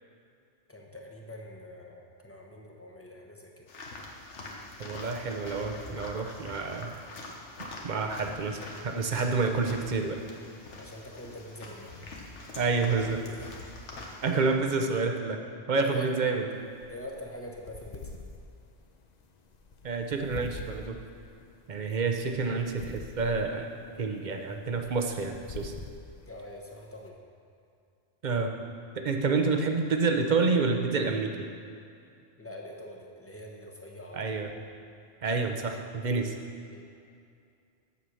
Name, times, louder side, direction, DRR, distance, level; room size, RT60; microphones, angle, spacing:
voice 1, 0.7-3.7 9.1-9.3 10.8-11.9 13.2-13.4 15.9-16.1 16.9-18.1 21.8-22.0 26.2-27.2 32.4-34.3 36.7-36.8, left 1 dB, 15° left, 0 dB, 0.9 m, -44 dB
sound 1, 3.7-14.5, left 2 dB, 85° left, 1.4 m, -44 dB
voice 2, 4.8-6.9 7.8-10.2 12.6-13.2 14.2-15.4 15.7-16.4 19.8-21.0 21.7-23.7 24.0-25.7 28.2-28.5 29.0-31.5 34.1-34.5 35.2-36.3, right 4 dB, 45° right, 4 dB, 0.8 m, -28 dB
sound 2, 16.5-27.1, left 4 dB, 45° left, 0.7 m, -46 dB
8.1 x 7.2 x 6.3 m, 2.4 s
omnidirectional pair, 1.2 m